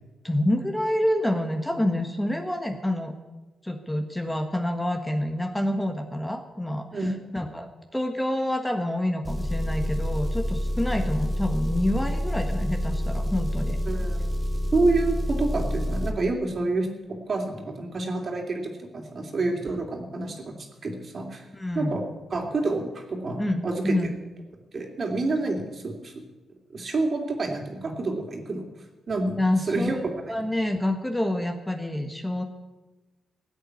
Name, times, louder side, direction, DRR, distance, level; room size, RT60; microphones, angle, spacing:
voice 1, 0.2-3.2 3.6-7.1 7.3-13.8 21.5-22.0 23.4-24.2 29.4-32.4, left 1 dB, 10° left, 5 dB, 1.3 m, -27 dB
Engine, 9.3-16.2, equal, 15° right, 1.6 m, -28 dB
voice 2, 13.9-14.2 14.7-20.5 20.8-21.4 21.7-22.0 22.3-23.9 24.7-26.1 26.7-28.6 29.1-29.4 29.7-30.0 30.2-30.3, right 2 dB, 45° right, 2 dB, 2.8 m, -28 dB
16.0 x 8.1 x 9.5 m, 1.1 s
cardioid pair, 100°, 0 cm